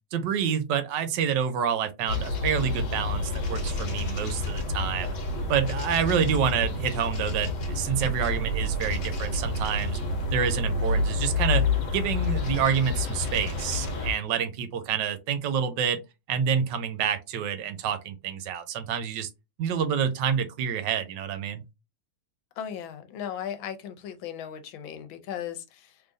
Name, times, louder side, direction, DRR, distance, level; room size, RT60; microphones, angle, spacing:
voice 1, 0.1-5.1 5.5-10.0 10.3-11.7 11.9-16.0 16.3-19.3 19.6-21.6, right 8 dB, 75° right, 1.2 m, -28 dB
sound 1, 2.1-14.1, left 2 dB, 65° left, 1.5 m, -29 dB
voice 2, 22.6-26.0, left 9 dB, 80° left, 1.5 m, -37 dB
3.7 x 3.3 x 2.6 m
omnidirectional pair, 2.1 m